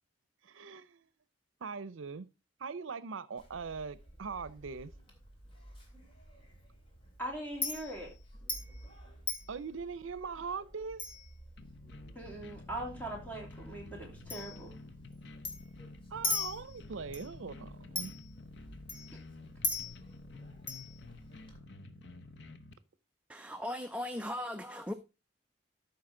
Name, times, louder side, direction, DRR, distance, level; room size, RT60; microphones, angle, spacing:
voice 1, 0.4-1.0 1.6-2.3 2.6-4.9 9.5-11.0 16.1-18.1, right 5 dB, 85° right, 0.6 m, -41 dB
Chink clink, 3.4-21.6, left 2 dB, 25° left, 2.3 m, -43 dB
voice 2, 7.2-8.1 12.1-14.8, right 1 dB, 10° left, 3.0 m, -41 dB
sound 1, 11.6-22.7, left 2 dB, 60° left, 0.9 m, -51 dB
voice 3, 23.3-24.9, left 1 dB, 5° right, 0.4 m, -38 dB
13.0 x 5.6 x 3.7 m
head